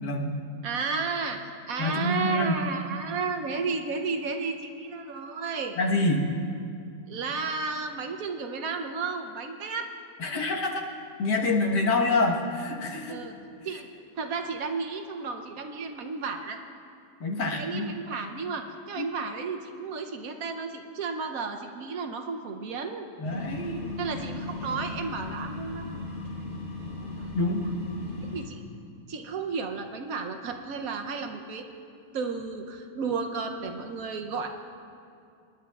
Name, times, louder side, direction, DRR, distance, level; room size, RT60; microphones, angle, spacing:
voice 1, 0.0-0.4 1.8-2.6 5.8-6.2 10.2-10.9 11.2-13.2 17.2-17.8 19.0-19.1 23.2-23.9 27.3-27.7, left 2 dB, 80° left, 0 dB, 1.9 m, -26 dB
voice 2, 0.6-1.4 1.7-5.8 7.1-9.9 13.1-13.3 13.6-13.9 14.2-16.6 17.5-23.1 24.0-26.1 26.6-27.3 28.3-28.6 29.1-31.7 32.1-34.5, right 4 dB, 65° right, 5 dB, 1.0 m, -33 dB
sound 1, 23.2-28.4, left 2 dB, 40° left, 2.4 m, -37 dB
25.5 x 10.5 x 2.3 m, 2.5 s
omnidirectional pair, 1.8 m